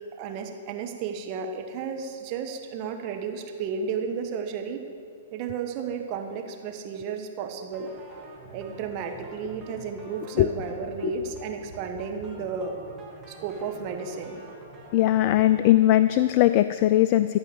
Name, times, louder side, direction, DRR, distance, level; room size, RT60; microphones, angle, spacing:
voice 1, 0.2-4.8 5.3-7.9 8.5-12.7 13.3-14.4, right 6 dB, 40° right, 4 dB, 1.2 m, -33 dB
sound 1, 7.7-15.7, right 2 dB, 5° right, 2.5 m, -46 dB
voice 2, 14.9-17.4, left 14 dB, 40° left, 13 dB, 0.3 m, -20 dB
14.0 x 5.5 x 8.2 m, 2.5 s
figure-of-eight pair, 115°, 0 cm